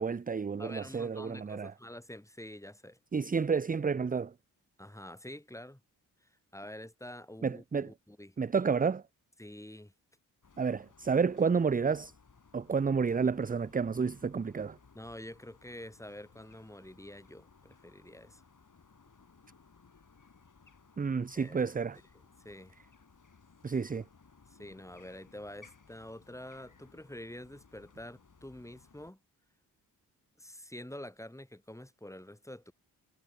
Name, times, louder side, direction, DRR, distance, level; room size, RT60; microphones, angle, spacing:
voice 1, 0.0-1.7 3.1-4.3 7.4-7.9 8.4-9.0 10.6-12.1 12.5-14.8 21.0-22.0 23.6-24.0, right 5 dB, 20° right, 0.6 m, -30 dB
voice 2, 0.6-3.0 4.8-5.8 6.2-8.4 9.4-9.9 14.9-18.4 21.3-21.6 22.1-22.8 24.5-29.2 30.4-32.7, left 1 dB, 5° left, 4.5 m, -47 dB
sound 1, 10.4-29.1, left 5 dB, 50° left, 6.5 m, -61 dB
supercardioid pair, 45°, 41 cm